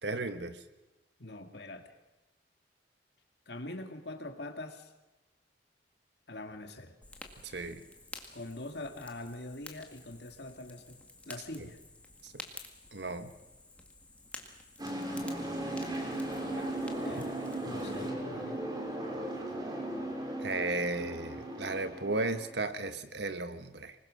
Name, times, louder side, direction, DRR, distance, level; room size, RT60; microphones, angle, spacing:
voice 1, 0.0-0.6 7.4-7.8 12.2-12.3 12.9-13.3 20.4-23.9, right 2 dB, 65° right, 10 dB, 1.4 m, -35 dB
voice 2, 1.2-1.9 3.5-4.9 6.3-6.9 8.3-11.0 11.3-11.8 16.5-16.7 17.0-17.4 17.6-18.7, left 2 dB, 60° left, 5 dB, 2.2 m, -43 dB
Fire, 7.0-18.1, left 2 dB, 10° left, 1.9 m, -51 dB
sound 1, 14.8-22.6, right 1 dB, 20° right, 3.6 m, -37 dB
25.5 x 20.5 x 6.5 m, 1.0 s
head